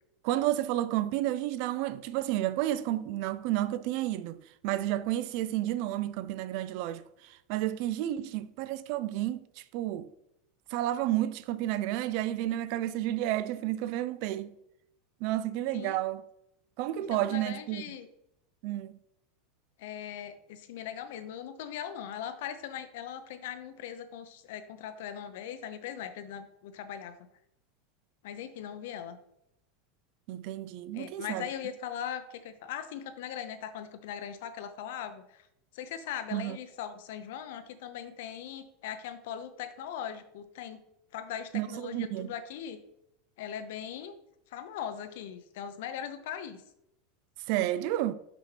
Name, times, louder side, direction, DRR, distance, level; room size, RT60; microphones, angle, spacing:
voice 1, 0.2-10.1 10.7-14.5 15.2-16.2 16.8-18.0 18.6-19.0 30.3-31.5 36.3-36.6 41.5-42.3 47.5-48.1, right 14 dB, 45° right, 0.3 m, -31 dB
voice 2, 17.1-18.1 19.8-27.2 28.2-29.2 30.9-35.5 35.7-40.8 41.1-42.8 43.4-44.1 44.5-46.6, left 9 dB, 65° left, 0.7 m, -40 dB
6.0 x 5.7 x 3.3 m
supercardioid pair, 175°, 0 cm